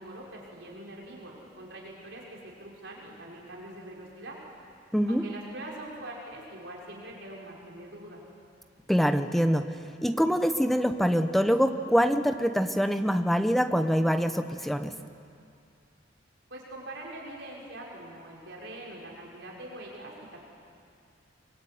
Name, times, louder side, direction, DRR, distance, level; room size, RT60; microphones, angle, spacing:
voice 1, 0.0-4.4 5.1-8.2 16.5-20.4, right 1 dB, 65° right, -3 dB, 5.8 m, -43 dB
voice 2, 4.9-5.3 8.9-9.7 10.0-14.9, equal, ahead, 8 dB, 1.0 m, -24 dB
24.0 x 23.5 x 9.4 m, 2.4 s
head